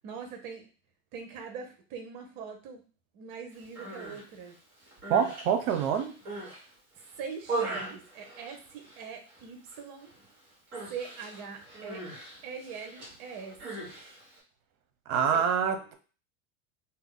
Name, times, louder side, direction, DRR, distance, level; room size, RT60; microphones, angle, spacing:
voice 1, 0.0-0.7 1.1-2.8 3.1-4.6 7.2-10.1 10.9-12.0 12.4-13.9 15.3-15.4, right 6 dB, 50° right, 5 dB, 1.0 m, -42 dB
Human voice, 3.6-4.2 4.8-6.6 7.0-9.0 9.3-9.8 10.0-10.3 10.7-14.4, right 2 dB, 25° right, 1.4 m, -39 dB
voice 2, 5.1-6.2 15.1-15.9, right 7 dB, 75° right, 7 dB, 0.8 m, -26 dB
2.8 x 2.1 x 3.8 m, 0.37 s
supercardioid pair, 120°, 42 cm